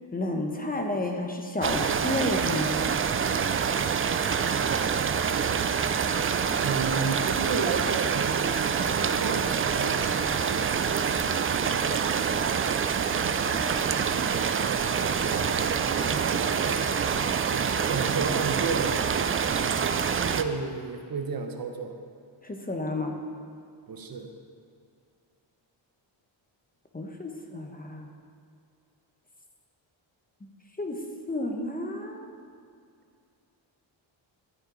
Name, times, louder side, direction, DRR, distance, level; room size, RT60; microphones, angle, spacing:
voice 1, 0.1-2.8 22.4-23.2 26.9-28.1 30.8-32.3, left 2 dB, 20° left, 3 dB, 0.9 m, -31 dB
sound 1, 1.6-20.4, right 6 dB, 30° right, 0.4 m, -26 dB
voice 2, 6.6-11.2 11.5-11.9 14.1-16.9 17.5-19.1 20.4-22.0 23.9-24.3, right 5 dB, 50° right, 5 dB, 0.9 m, -34 dB
12.0 x 9.6 x 3.9 m, 2.3 s
wide cardioid pair, 130°, 47 cm